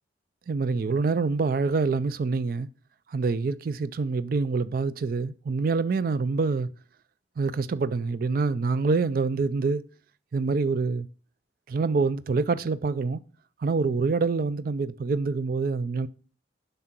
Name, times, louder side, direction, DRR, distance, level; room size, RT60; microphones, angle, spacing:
voice 1, 0.5-2.7 3.1-6.7 7.4-9.8 10.3-11.1 11.7-13.2 13.6-16.1, right 4 dB, 50° right, 0.4 m, -26 dB
7.5 x 5.5 x 5.9 m
head